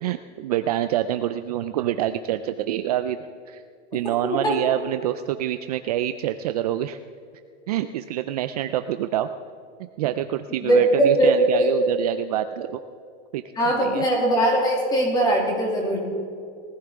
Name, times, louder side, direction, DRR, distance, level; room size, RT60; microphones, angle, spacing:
voice 1, 0.0-3.2 3.5-3.6 3.9-7.0 7.7-9.3 10.0-12.8 13.3-13.4 13.7-14.1, right 12 dB, 40° right, 10 dB, 0.4 m, -26 dB
voice 2, 4.2-4.5 10.6-11.7 13.6-16.0, right 1 dB, 15° left, -1 dB, 2.6 m, -20 dB
19.5 x 14.5 x 3.6 m, 2.4 s
supercardioid pair, 170°, 31 cm